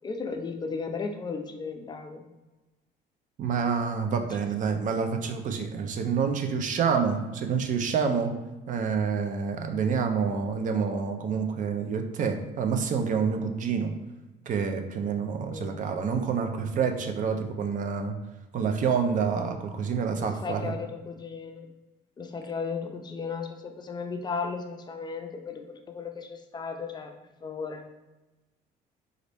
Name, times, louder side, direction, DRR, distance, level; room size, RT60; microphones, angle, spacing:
voice 1, 0.0-2.2 4.3-4.5 15.4-15.9 20.2-21.7 22.2-27.1 27.4-27.8, left 5 dB, 25° left, 4 dB, 0.4 m, -35 dB
voice 2, 3.4-8.3 8.7-13.9 14.5-18.1 18.5-20.7, right 6 dB, 50° right, 5 dB, 0.5 m, -28 dB
4.0 x 2.5 x 3.3 m, 1.1 s
cardioid pair, 110°, 17 cm